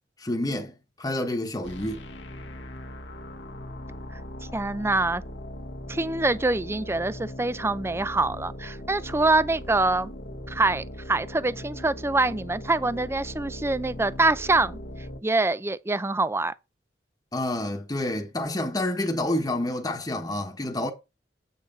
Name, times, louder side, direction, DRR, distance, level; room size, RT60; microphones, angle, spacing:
voice 1, 0.2-2.1 17.3-20.9, left 1 dB, 20° left, 1.2 m, -28 dB
sound 1, 1.6-15.2, left 1 dB, 85° left, 1.4 m, -39 dB
voice 2, 4.5-5.2 5.9-10.1 10.5-14.8 15.2-16.5, right 2 dB, 15° right, 0.5 m, -25 dB
8.1 x 7.4 x 4.0 m
head